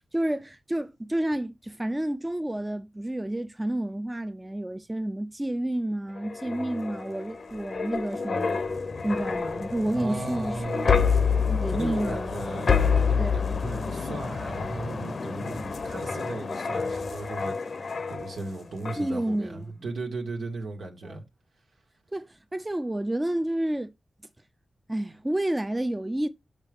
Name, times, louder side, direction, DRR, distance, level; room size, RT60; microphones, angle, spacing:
voice 1, 0.1-8.6 9.0-10.6 11.4-12.4 13.2-13.6 19.0-19.9 21.0-21.2 22.1-23.9 24.9-26.3, right 1 dB, 15° right, 0.5 m, -30 dB
sound 1, 6.2-18.5 18.9-19.1, left 5 dB, 65° left, 0.7 m, -28 dB
voice 2, 9.9-11.2 11.7-21.2, right 3 dB, 85° right, 1.7 m, -37 dB
7.3 x 5.5 x 3.6 m
cardioid pair, 75°, 0 cm